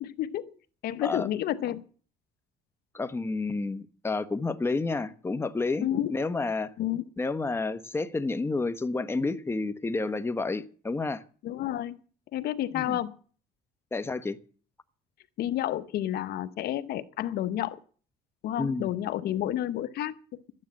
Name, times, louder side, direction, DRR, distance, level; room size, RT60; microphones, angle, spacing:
voice 1, 0.0-0.5 0.8-1.8 5.8-6.1 6.8-7.0 11.4-12.0 12.3-13.1 15.4-17.8 18.4-20.1, left 12 dB, 70° left, 0.9 m, -30 dB
voice 2, 2.9-6.7 7.2-11.2 12.7-13.0 13.9-14.4 18.6-18.9, left 3 dB, 15° left, 1.0 m, -30 dB
13.5 x 9.8 x 7.6 m
cardioid pair, 110°, 17 cm